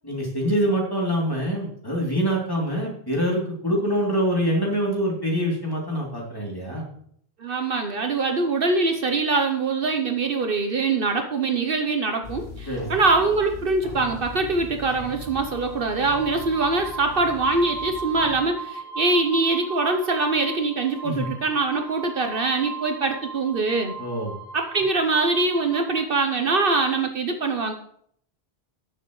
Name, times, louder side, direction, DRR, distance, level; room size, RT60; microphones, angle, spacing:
voice 1, 0.0-6.9 12.7-12.9 21.0-21.3 24.0-24.3, equal, 20° left, -3 dB, 3.0 m, -25 dB
voice 2, 7.4-23.9 24.5-27.7, right 3 dB, 60° right, 5 dB, 1.0 m, -23 dB
sound 1, 12.2-18.4, left 3 dB, 75° left, 3.9 m, -40 dB
sound 2, 15.2-26.0, right 5 dB, 20° right, 5.6 m, -37 dB
18.5 x 6.7 x 3.1 m, 0.65 s
omnidirectional pair, 1.1 m